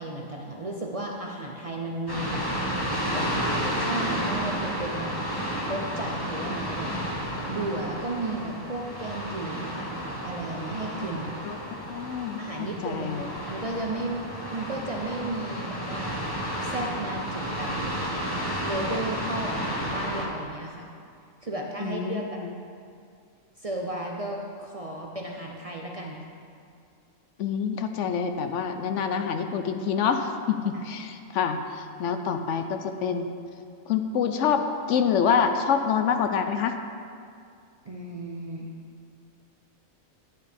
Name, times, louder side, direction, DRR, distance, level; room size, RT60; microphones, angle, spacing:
voice 1, 0.0-2.4 3.1-5.2 5.6-7.0 7.5-11.4 12.4-13.1 13.5-14.2 14.5-16.2 16.6-17.7 18.0-18.1 18.6-20.9 21.4-22.4 23.6-26.2 30.7-30.9 37.9-38.7, right 2 dB, 40° right, 0 dB, 0.5 m, -34 dB
sound 1, 2.1-20.2, equal, 15° left, 1.3 m, -32 dB
voice 2, 11.9-12.4 12.8-13.3 21.8-22.5 27.4-33.3 33.9-36.7, left 7 dB, 70° left, 7 dB, 0.9 m, -26 dB
10.5 x 8.8 x 3.5 m, 2.3 s
omnidirectional pair, 1.4 m